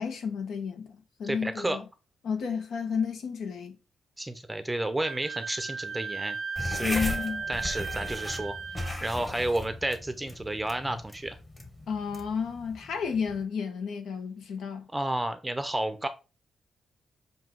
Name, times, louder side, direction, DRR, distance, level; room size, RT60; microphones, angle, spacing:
voice 1, 0.0-1.8 2.2-3.7 6.8-7.4 11.9-14.9, left 6 dB, 80° left, 1.3 m, -32 dB
voice 2, 1.2-1.8 4.2-7.1 7.5-8.5 9.0-11.4 14.9-16.1, right 1 dB, 10° right, 0.6 m, -31 dB
Wind instrument woodwind instrument, 5.0-9.0, right 5 dB, 60° right, 0.4 m, -36 dB
sound 1, 6.6-13.4, left 1 dB, 15° left, 1.1 m, -37 dB
7.4 x 2.8 x 4.5 m
cardioid pair, 130°, 0 cm